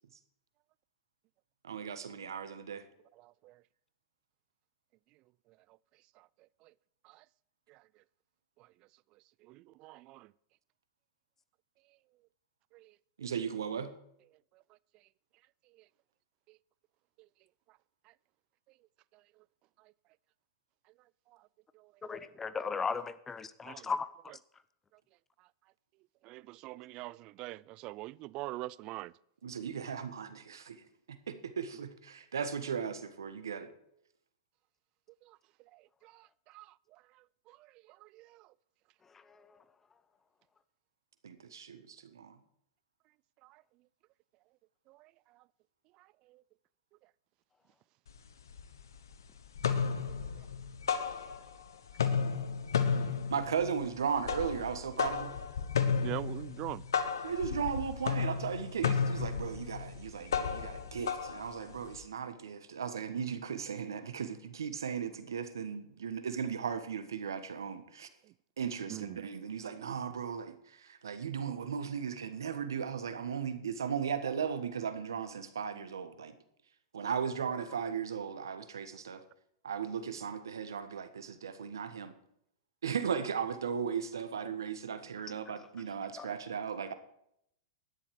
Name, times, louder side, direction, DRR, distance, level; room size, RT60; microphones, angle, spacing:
voice 1, 1.6-2.8 13.2-13.9 29.4-30.8 31.1-33.7 41.2-42.4 52.9-53.0 53.3-55.4 57.2-68.1 68.6-76.3 76.9-79.2 79.6-82.1 82.8-86.9, right 7 dB, 80° right, 1.4 m, -36 dB
voice 2, 9.5-10.3 12.7-12.9 21.8-21.9 23.7-23.9 24.3-24.4 26.2-29.1 35.3-35.4 35.7-36.7 37.5-37.6 37.9-38.5 43.4-43.6 44.9-45.1 50.1-50.2 56.0-56.8 68.9-69.2, right 19 dB, 40° right, 0.4 m, -43 dB
voice 3, 22.1-24.1 86.2-86.3, left 5 dB, 15° left, 0.8 m, -35 dB
sound 1, 48.1-48.2 48.5-49.1 49.4-51.6 51.9-62.0, left 6 dB, 80° left, 1.2 m, -33 dB
12.5 x 10.0 x 4.8 m
hypercardioid pair, 110°, 2 cm